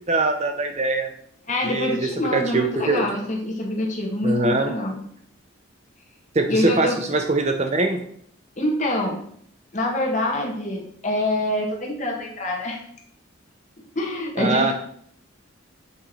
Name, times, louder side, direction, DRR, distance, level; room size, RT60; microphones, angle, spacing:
voice 1, 0.1-1.1 1.6-2.0 2.3-3.1 4.2-4.7 6.3-8.0 14.4-14.7, right 2 dB, 30° right, 5 dB, 0.6 m, -22 dB
voice 2, 1.5-5.0 6.5-7.0 8.6-9.2 9.7-12.8 13.8-14.7, left 1 dB, 35° left, 0 dB, 1.5 m, -25 dB
8.0 x 4.8 x 4.3 m, 0.64 s
head